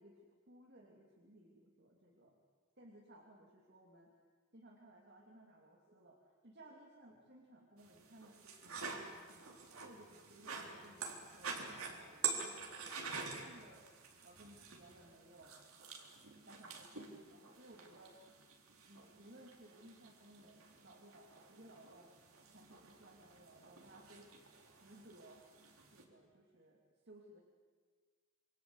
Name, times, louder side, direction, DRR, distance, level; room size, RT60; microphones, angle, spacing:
voice 1, 0.0-2.4 2.8-4.1 4.5-9.6 9.8-15.6 16.5-18.2 18.9-24.3 24.7-25.5 25.9-27.4, right 1 dB, 50° right, 0 dB, 2.9 m, -61 dB
sound 1, 7.8-26.0, right 5 dB, 85° right, 3.8 m, -48 dB
27.5 x 23.5 x 8.1 m, 1.5 s
head